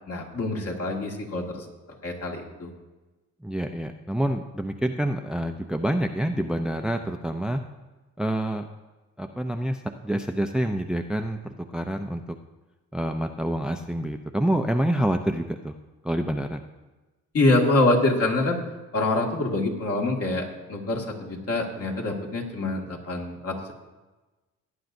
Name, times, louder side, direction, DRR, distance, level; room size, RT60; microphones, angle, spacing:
voice 1, 0.1-1.7 2.0-2.7 17.3-18.6 18.9-23.7, left 2 dB, 50° left, 0 dB, 2.0 m, -25 dB
voice 2, 3.4-7.6 8.2-8.6 9.2-11.4 11.7-12.2 12.9-15.7 16.0-16.6, right 1 dB, 5° right, 6 dB, 0.5 m, -27 dB
17.5 x 9.2 x 2.6 m, 1.2 s
cardioid pair, 90°, 30 cm